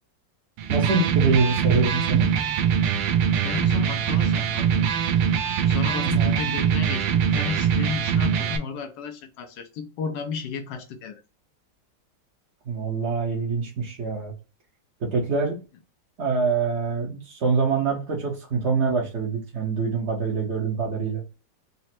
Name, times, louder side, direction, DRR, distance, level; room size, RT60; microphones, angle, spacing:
Electric guitar, 0.6-8.6, right 8 dB, 85° right, 1.3 m, -23 dB
voice 1, 0.7-2.3 6.0-6.5 12.7-14.3 15.0-15.6 16.2-21.2, right 4 dB, 50° right, 0.9 m, -25 dB
voice 2, 3.4-4.9 5.6-11.2, left 6 dB, 80° left, 1.3 m, -33 dB
4.1 x 2.0 x 4.2 m
omnidirectional pair, 2.0 m